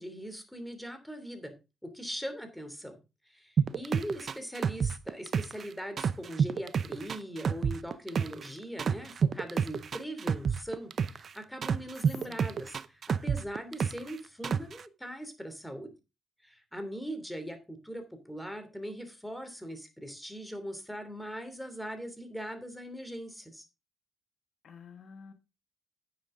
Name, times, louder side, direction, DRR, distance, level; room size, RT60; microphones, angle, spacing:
voice 1, 0.0-1.5 1.8-3.0 3.3-15.9 16.4-23.7, equal, 5° left, 8 dB, 2.9 m, -41 dB
sound 1, 3.6-5.7 6.0-8.5 8.8-11.3 11.6-14.1 14.4-14.8, right 6 dB, 50° right, 0.6 m, -28 dB
voice 2, 12.0-12.4 24.6-25.3, left 6 dB, 55° left, 8 dB, 1.4 m, -50 dB
10.0 x 9.3 x 3.7 m, 0.27 s
cardioid pair, 90°, 0 cm